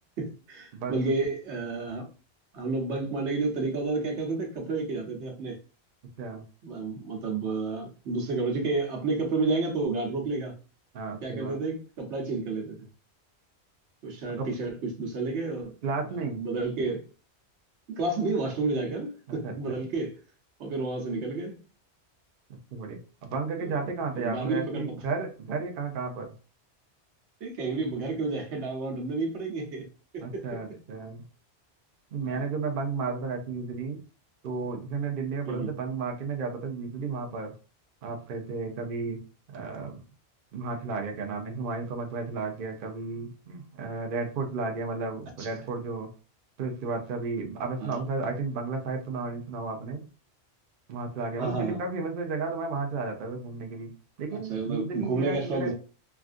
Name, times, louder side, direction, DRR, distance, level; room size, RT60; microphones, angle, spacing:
voice 1, 0.2-2.1 2.5-5.6 6.6-10.5 11.2-12.8 14.0-15.7 16.3-17.0 17.9-20.2 20.6-21.6 23.6-23.8 24.2-24.9 27.4-29.9 30.1-30.4 32.3-32.4 35.5-35.7 45.4-45.5 47.8-48.0 51.4-51.8 54.3-55.7, right 3 dB, 85° right, 1.2 m, -30 dB
voice 2, 0.7-1.1 6.2-6.4 10.9-11.6 14.4-14.5 15.8-16.4 19.4-19.8 22.5-26.3 30.2-31.2 32.1-34.0 34.4-37.5 38.0-39.2 39.5-40.0 40.5-46.1 46.6-50.1 50.9-53.9 54.2-55.7, right 4 dB, 55° right, 0.8 m, -33 dB
3.5 x 2.4 x 2.4 m
omnidirectional pair, 1.1 m